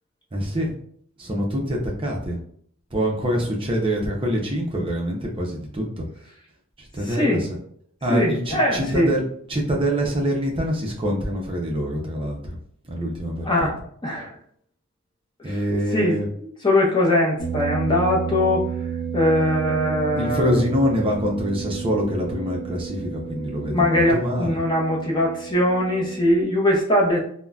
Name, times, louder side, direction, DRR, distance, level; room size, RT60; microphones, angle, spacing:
voice 1, 0.3-0.7 1.2-2.4 2.9-6.0 6.8-7.5 8.0-9.2 9.5-12.6 12.9-13.5 15.4-16.3 20.2-24.6, equal, 25° right, 0 dB, 0.5 m, -25 dB
voice 2, 7.1-7.4 8.1-9.1 13.4-14.3 15.4-15.5 15.9-18.6 19.1-20.6 23.7-27.2, left 1 dB, 20° left, -3 dB, 0.7 m, -21 dB
sound 1, 17.4-26.4, right 7 dB, 55° left, 1.1 m, -32 dB
3.7 x 2.1 x 2.3 m, 0.63 s
head